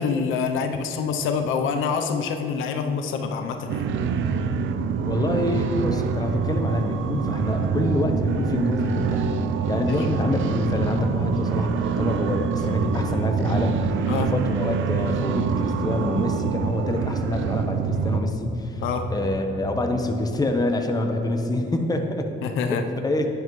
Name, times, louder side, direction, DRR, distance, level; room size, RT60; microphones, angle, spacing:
voice 1, 0.0-3.9 9.9-10.0 14.1-14.3 18.8-19.1 22.4-22.8, left 5 dB, 90° left, 6 dB, 0.7 m, -26 dB
sound 1, 3.7-18.2, right 5 dB, 80° right, 0.6 m, -25 dB
voice 2, 5.0-9.3 9.7-18.8 19.1-22.3 22.7-23.3, left 1 dB, 20° left, 4 dB, 1.0 m, -26 dB
sound 2, 10.3-10.8 11.8-11.9 12.2-13.8 16.1-16.2 16.4-17.1 18.3-20.1, left 1 dB, 35° right, 2.2 m, -35 dB
10.0 x 10.0 x 3.2 m, 2.9 s
cardioid pair, 90°, 20 cm